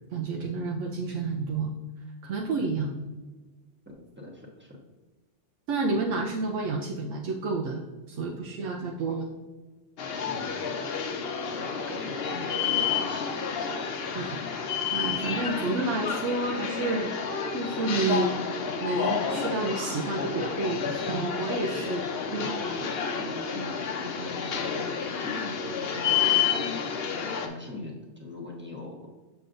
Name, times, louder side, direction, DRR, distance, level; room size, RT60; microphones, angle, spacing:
voice 1, 0.1-1.7 2.2-3.0 5.7-9.3 14.1-14.4 14.9-17.1 17.5-18.3 18.8-22.5, right 3 dB, 85° right, 1 dB, 0.9 m, -30 dB
voice 2, 4.2-4.8 8.7-8.9 10.4-10.6 11.5-13.3 15.2-15.5 22.4-26.2 26.5-29.1, left 2 dB, 10° right, -2 dB, 1.0 m, -42 dB
sound 1, 10.0-27.5, left 6 dB, 60° left, 0.8 m, -30 dB
6.7 x 6.2 x 2.5 m, 1.2 s
omnidirectional pair, 1.2 m